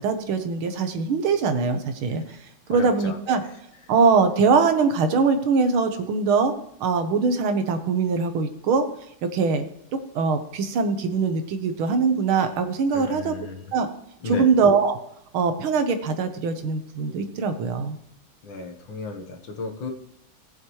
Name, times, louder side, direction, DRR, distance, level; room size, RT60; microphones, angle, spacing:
voice 1, 0.0-2.2 2.7-3.4 3.9-6.5 6.8-8.9 9.2-9.7 10.2-13.4 13.7-13.9 14.2-15.0 15.3-18.0, right 5 dB, 90° right, 8 dB, 1.9 m, -22 dB
voice 2, 2.7-3.4 12.9-13.6 14.2-14.5 18.4-19.9, left 3 dB, 70° left, 3 dB, 2.0 m, -34 dB
18.0 x 7.3 x 3.1 m, 0.77 s
omnidirectional pair, 2.2 m